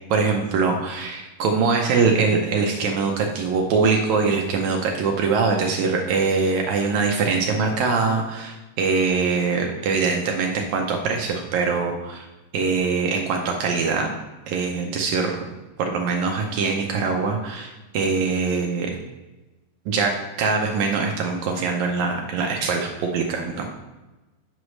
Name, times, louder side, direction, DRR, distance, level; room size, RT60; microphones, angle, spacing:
voice 1, 0.1-12.3 12.5-14.1 14.5-15.4 15.8-18.9 19.8-20.1 20.4-23.7, right 4 dB, 85° right, 1 dB, 1.6 m, -23 dB
8.0 x 3.1 x 6.2 m, 1.1 s
omnidirectional pair, 4.1 m